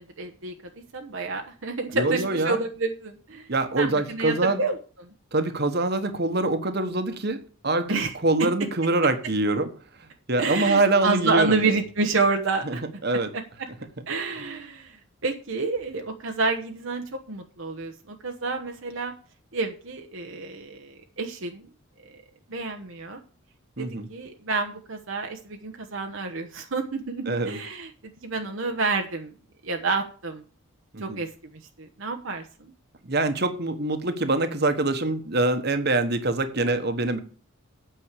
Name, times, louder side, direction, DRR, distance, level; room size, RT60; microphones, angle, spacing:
voice 1, 0.0-3.5 3.8-5.1 7.9-8.1 8.4-8.5 10.4-12.8 13.3-13.4 14.1-19.1 19.5-21.7 22.1-22.2 22.5-23.2 23.8-29.3 29.6-30.4 31.0-32.7, right 3 dB, 65° right, 4 dB, 1.1 m, -29 dB
voice 2, 1.9-2.6 3.5-4.6 5.3-9.7 10.3-11.7 12.6-12.8 13.0-13.3 23.8-24.1 27.3-27.6 30.9-31.2 33.1-37.2, right 2 dB, 50° right, 8 dB, 1.4 m, -24 dB
9.2 x 6.2 x 8.2 m, 0.40 s
head